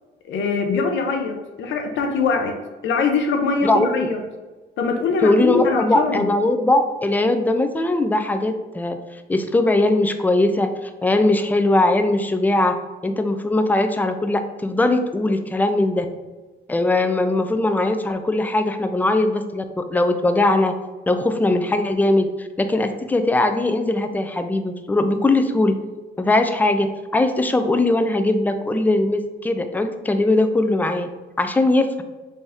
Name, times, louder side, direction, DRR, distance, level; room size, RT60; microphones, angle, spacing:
voice 1, 0.3-2.6 2.8-4.2 4.8-6.3, left 4 dB, 70° left, 4 dB, 0.6 m, -22 dB
voice 2, 3.6-4.1 5.2-9.0 9.3-12.7 13.0-16.1 16.7-20.7 21.1-25.8 26.2-31.1 31.4-32.0, left 2 dB, 10° left, 8 dB, 0.3 m, -20 dB
3.4 x 2.6 x 3.4 m, 1.2 s
cardioid pair, 90°, 20 cm